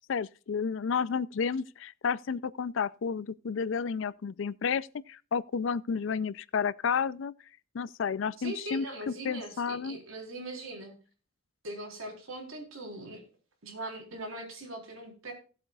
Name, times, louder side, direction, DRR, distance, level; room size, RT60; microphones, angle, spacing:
voice 1, 0.1-7.3 7.7-8.9 9.2-10.0, left 6 dB, 65° left, 0.4 m, -31 dB
voice 2, 8.4-11.0 11.6-13.2 13.6-15.3, right 1 dB, 85° right, 3.9 m, -41 dB
17.0 x 7.9 x 2.4 m
head